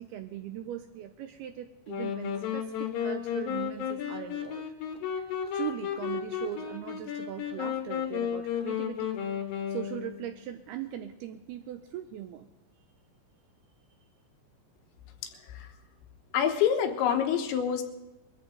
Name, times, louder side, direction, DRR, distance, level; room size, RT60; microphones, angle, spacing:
voice 1, 0.0-4.6 5.1-9.2 9.7-12.5, right 11 dB, 85° right, 7 dB, 2.3 m, -40 dB
sound 1, 1.9-10.3, left 8 dB, 65° left, 2.6 m, -33 dB
voice 2, 16.3-17.8, left 8 dB, 80° left, 5 dB, 3.5 m, -26 dB
22.5 x 14.0 x 3.8 m, 1.0 s
omnidirectional pair, 5.2 m